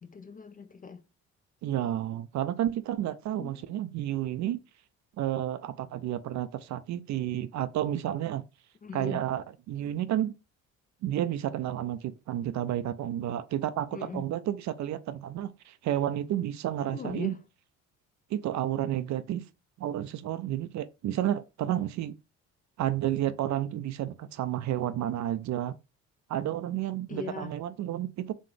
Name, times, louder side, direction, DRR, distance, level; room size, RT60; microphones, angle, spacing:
voice 1, 0.0-1.0 3.3-3.6 8.8-9.2 13.9-14.2 16.9-17.4 27.1-27.6, left 5 dB, 20° left, 0.4 m, -40 dB
voice 2, 1.6-4.6 5.2-8.4 8.9-10.3 11.0-17.3 18.3-19.4 19.8-22.1 22.8-25.7 26.3-28.3, right 12 dB, 45° right, 0.5 m, -31 dB
4.1 x 3.2 x 3.2 m
hypercardioid pair, 50°, 42 cm